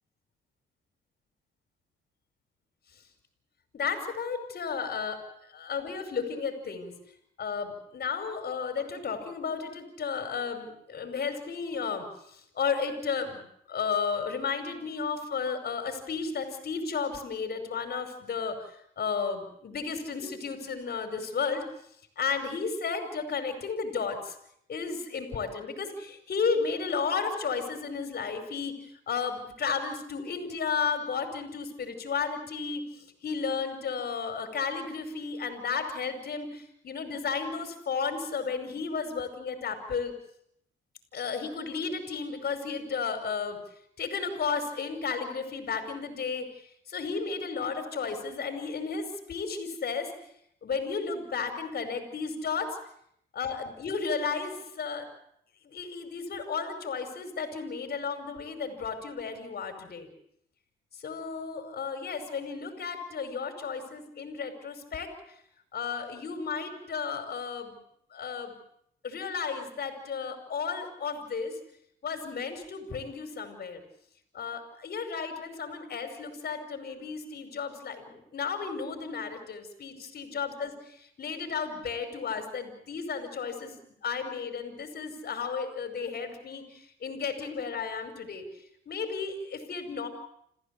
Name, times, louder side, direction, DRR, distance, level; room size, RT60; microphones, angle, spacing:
voice 1, 3.7-5.2 5.5-6.9 7.4-21.7 22.2-24.4 24.7-28.8 29.1-40.1 41.1-43.6 44.0-46.5 46.9-50.1 50.6-52.8 53.3-55.1 55.6-60.1 61.0-65.1 65.7-67.8 68.1-68.5 69.0-71.6 72.0-73.8 74.3-88.5 88.9-90.1, left 5 dB, 50° left, 7 dB, 5.4 m, -33 dB
27.0 x 15.5 x 8.5 m, 0.72 s
cardioid pair, 90°, 20 cm